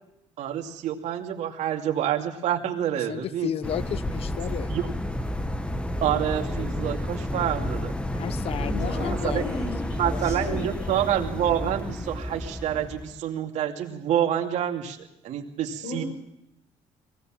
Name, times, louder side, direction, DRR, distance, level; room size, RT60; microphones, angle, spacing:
voice 1, 0.4-3.5 4.7-4.8 6.0-7.9 9.2-9.4 10.0-15.0 15.2-16.0, right 10 dB, 70° right, 2 dB, 2.6 m, -27 dB
voice 2, 3.0-4.8 8.1-9.6, left 10 dB, 50° left, 18 dB, 0.8 m, -33 dB
sound 1, 3.6-13.2, left 1 dB, 10° left, 1.2 m, -31 dB
voice 3, 8.6-11.0 15.8-16.1, left 2 dB, 75° left, 1 dB, 6.6 m, -35 dB
22.0 x 17.5 x 7.6 m, 0.81 s
cardioid pair, 105°, 12 cm